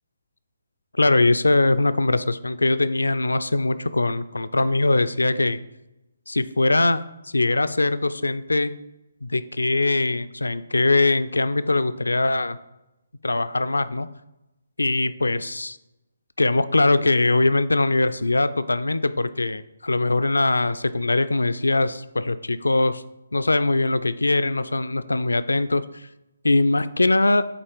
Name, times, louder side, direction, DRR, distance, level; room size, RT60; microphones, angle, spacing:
voice 1, 0.9-5.6 6.3-8.7 9.2-12.6 13.2-14.1 14.8-15.8 16.4-23.0 23.3-26.1 26.4-27.4, left 2 dB, 75° left, 13 dB, 0.4 m, -21 dB
8.1 x 3.0 x 4.5 m, 0.96 s
figure-of-eight pair, 140°, 0 cm